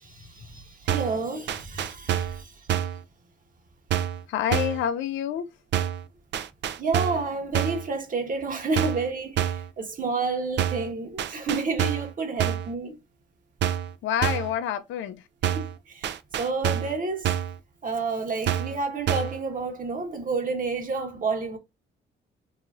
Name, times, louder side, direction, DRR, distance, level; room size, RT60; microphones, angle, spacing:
voice 1, 0.0-2.5 6.8-13.0 15.9-16.1 16.4-17.3 17.8-21.6, right 4 dB, 45° right, 1.1 m, -30 dB
sound 1, 0.9-1.2 1.5-2.4 2.7-3.0 3.9-4.2 4.5-4.8 5.7-6.0 6.3-7.3 7.5-7.9 8.8-9.1 9.4-9.7 10.6-10.9 11.2-12.1 12.4-12.7 13.6-13.9 14.2-14.5 15.4-15.8 16.0-17.0 17.2-17.6 18.5-18.8 19.1-19.4, right 10 dB, 65° right, 0.4 m, -27 dB
voice 2, 4.3-5.5 14.0-15.2, left 10 dB, 75° left, 0.4 m, -27 dB
3.0 x 2.8 x 2.3 m
cardioid pair, 90°, 20 cm